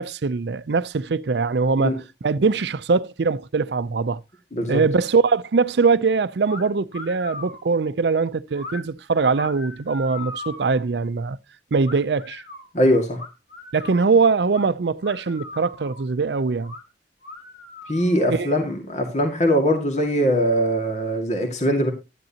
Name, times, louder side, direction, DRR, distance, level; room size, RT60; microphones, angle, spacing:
voice 1, 0.0-4.2 4.7-11.4 11.7-12.4 13.7-16.7 18.3-18.6, right 4 dB, 75° right, 0.5 m, -22 dB
sound 1, 6.5-6.6 6.9-7.7 8.5-8.8 9.3-10.8 11.8-12.7 13.2-14.1 14.5-14.6 15.0-16.1 16.6-16.8 17.2-18.3, left 2 dB, 85° left, 3.3 m, -39 dB
voice 2, 12.7-13.2 17.9-21.9, equal, 40° left, 2.1 m, -21 dB
12.5 x 10.5 x 2.9 m
head